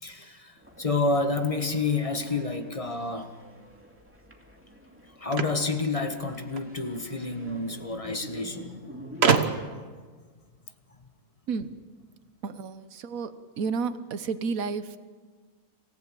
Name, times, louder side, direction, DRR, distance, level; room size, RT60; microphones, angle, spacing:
voice 1, 0.0-3.3 5.2-9.2, left 3 dB, 25° left, 6 dB, 1.4 m, -29 dB
sound 1, 0.6-9.5, equal, 10° right, 2.5 m, -48 dB
sound 2, 5.3-6.7 7.8-7.9 8.1-8.2 9.2-9.9, right 5 dB, 50° right, 1.4 m, -25 dB
voice 2, 12.4-13.3 13.6-15.0, right 5 dB, 75° right, 11 dB, 1.4 m, -31 dB
27.0 x 15.5 x 7.7 m, 1.5 s
omnidirectional pair, 1.5 m